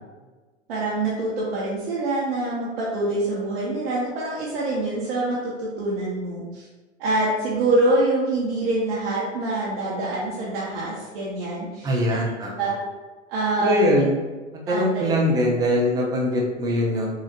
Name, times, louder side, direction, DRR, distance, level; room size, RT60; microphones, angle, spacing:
voice 1, 0.7-6.7 7.0-12.2 12.6-12.8 13.3-13.9 14.7-15.1, right 2 dB, 45° right, -7 dB, 1.0 m, -25 dB
voice 2, 11.8-12.7 13.6-14.2 14.7-17.1, equal, 10° right, -3 dB, 0.5 m, -22 dB
6.6 x 2.5 x 2.5 m, 1.3 s
figure-of-eight pair, 100°, 38 cm